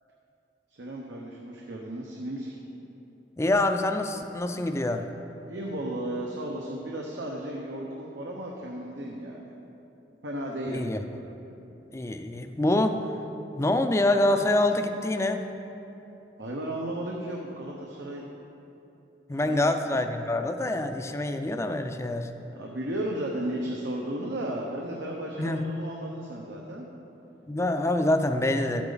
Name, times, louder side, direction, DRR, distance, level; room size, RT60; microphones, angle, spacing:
voice 1, 0.7-2.6 5.4-9.5 10.2-10.9 16.4-18.3 19.3-20.0 22.5-26.9, right 1 dB, 85° right, -2 dB, 1.0 m, -34 dB
voice 2, 3.4-5.0 10.7-11.0 11.9-13.0 13.5-15.5 19.3-22.3 25.4-25.6 27.5-28.8, left 1 dB, 15° left, 6 dB, 0.4 m, -26 dB
13.0 x 8.8 x 4.0 m, 3.0 s
head